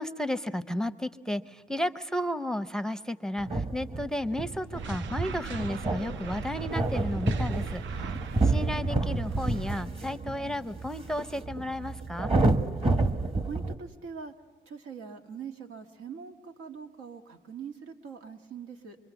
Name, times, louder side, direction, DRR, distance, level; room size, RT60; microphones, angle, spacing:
voice 1, 0.0-8.1 8.4-12.3, left 1 dB, 5° left, 14 dB, 0.6 m, -33 dB
sound 1, 3.4-13.8, right 2 dB, 25° right, 1.4 m, -29 dB
sound 2, 4.3-10.0, right 2 dB, 45° right, 6.0 m, -52 dB
sound 3, 4.8-9.8, right 6 dB, 70° right, 0.7 m, -41 dB
voice 2, 12.8-13.1 13.4-14.3 14.7-19.0, right 6 dB, 90° right, 4 dB, 1.8 m, -42 dB
24.5 x 24.5 x 7.0 m, 1.4 s
cardioid pair, 90°, 20 cm